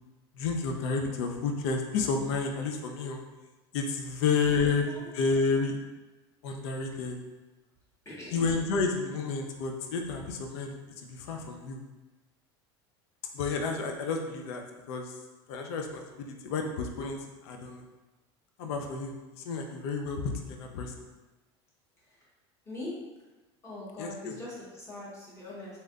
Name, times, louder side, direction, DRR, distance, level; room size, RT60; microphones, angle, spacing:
voice 1, 0.4-3.2 3.7-5.8 6.4-7.2 8.3-11.8 13.3-14.6 14.9-15.1 15.5-17.8 18.6-20.9 24.0-24.3, left 4 dB, 70° left, 3 dB, 0.5 m, -31 dB
voice 2, 4.6-5.1 8.0-8.5 22.0-22.3 22.6-22.9 23.6-25.8, left 2 dB, 20° left, -7 dB, 1.4 m, -42 dB
3.1 x 2.8 x 2.4 m, 1.2 s
hypercardioid pair, 85°, 14 cm